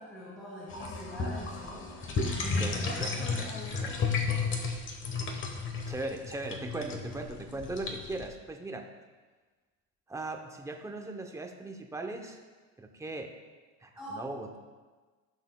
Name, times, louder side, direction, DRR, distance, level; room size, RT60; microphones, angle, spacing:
voice 1, 0.0-3.7 14.0-14.2, equal, 5° left, -8 dB, 2.5 m, -44 dB
sound 1, 0.7-8.3, left 4 dB, 35° left, 1.1 m, -33 dB
voice 2, 2.6-3.9 5.9-8.9 10.1-12.4 12.8-13.3 13.8-14.6, right 2 dB, 10° right, 4 dB, 0.6 m, -39 dB
15.0 x 6.3 x 2.2 m, 1.4 s
cardioid pair, 140°, 34 cm